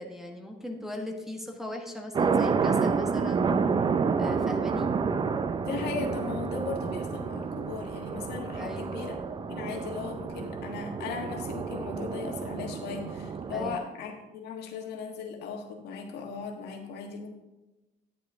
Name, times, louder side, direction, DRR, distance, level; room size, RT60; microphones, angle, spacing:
voice 1, 0.0-3.4 4.2-5.0 8.6-8.9 13.5-13.9, left 1 dB, ahead, 2 dB, 1.3 m, -38 dB
sound 1, 2.1-13.8, right 5 dB, 30° right, 0.5 m, -29 dB
voice 2, 5.6-9.2 9.5-17.3, left 5 dB, 75° left, 2 dB, 1.5 m, -37 dB
10.0 x 7.7 x 3.6 m, 1.1 s
cardioid pair, 110°, 17 cm